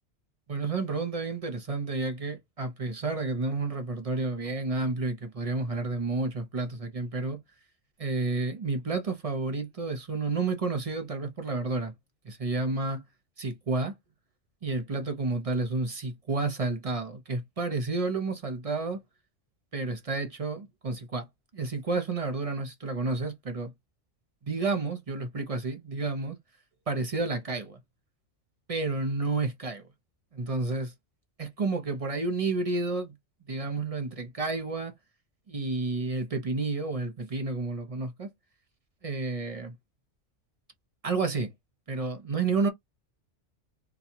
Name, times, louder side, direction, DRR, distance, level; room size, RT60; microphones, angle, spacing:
voice 1, 0.5-7.4 8.0-11.9 12.2-13.0 13.4-14.0 14.6-19.0 19.7-21.3 21.5-23.7 24.4-26.4 26.9-27.8 28.7-29.8 30.3-30.9 31.4-33.1 33.5-34.9 35.5-38.3 39.0-39.7 41.0-41.5 41.9-42.7, right 3 dB, 35° right, 0.8 m, -30 dB
4.0 x 2.3 x 2.8 m
omnidirectional pair, 1.3 m